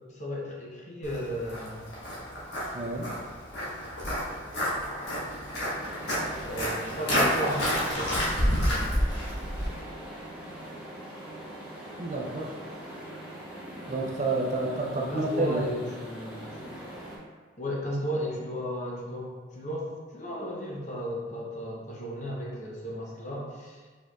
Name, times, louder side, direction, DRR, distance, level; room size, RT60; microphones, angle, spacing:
voice 1, 0.1-1.9 6.5-8.1 10.1-10.2 14.9-16.8 17.6-23.9, equal, 40° left, -3 dB, 0.8 m, -35 dB
Walk footsteps, 1.0-9.7, equal, 60° left, 1.2 m, -29 dB
voice 2, 2.7-3.1 12.0-12.6 13.9-15.7, right 2 dB, 35° right, -1 dB, 0.5 m, -29 dB
sound 1, 5.8-17.2, right 1 dB, 5° right, 0.8 m, -42 dB
4.6 x 4.5 x 2.3 m, 1.4 s
head